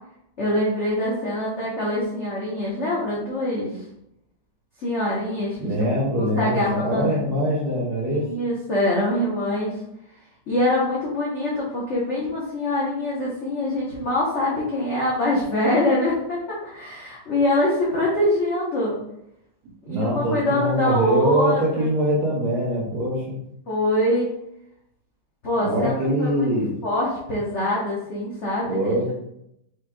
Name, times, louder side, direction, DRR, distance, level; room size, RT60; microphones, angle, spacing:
voice 1, 0.4-3.7 4.8-5.7 6.1-7.2 8.1-9.8 10.5-19.0 19.9-21.9 23.7-24.3 25.4-25.9 26.2-26.5 26.8-29.1, left 1 dB, 50° left, -6 dB, 1.0 m, -24 dB
voice 2, 5.6-8.2 19.9-23.4 25.6-26.8 28.7-29.1, equal, 65° right, -3 dB, 1.3 m, -23 dB
4.9 x 4.2 x 2.2 m, 0.79 s
omnidirectional pair, 2.0 m